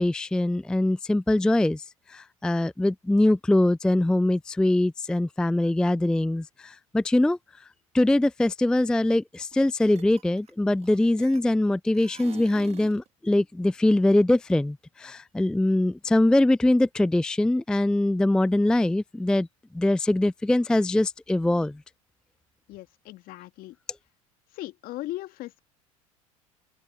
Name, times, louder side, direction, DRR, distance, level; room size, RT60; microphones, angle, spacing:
voice 1, 0.0-1.8 2.1-7.4 7.9-19.5 19.7-21.7, left 1 dB, 5° left, 0.4 m, -23 dB
sound 1, 9.4-9.6 9.9-11.7 11.9-13.1, right 8 dB, 35° right, 1.9 m, -46 dB
voice 2, 22.7-23.8 24.5-25.6, left 16 dB, 55° left, 2.2 m, -38 dB
hypercardioid pair, 70°, 18 cm